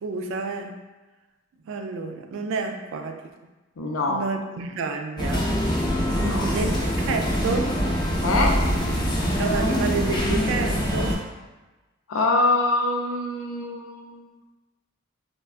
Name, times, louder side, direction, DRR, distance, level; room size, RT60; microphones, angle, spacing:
voice 1, 0.0-0.8 1.7-3.2 4.1-5.5 6.3-6.7 7.1-7.8 9.4-11.2, right 4 dB, 65° right, 5 dB, 0.3 m, -29 dB
voice 2, 3.8-4.2 6.1-6.6 8.2-8.6 12.1-14.3, left 2 dB, 75° left, 0 dB, 0.5 m, -24 dB
sound 1, 5.2-11.1, equal, 20° left, 0.4 m, -24 dB
3.4 x 2.1 x 2.4 m, 1.2 s
head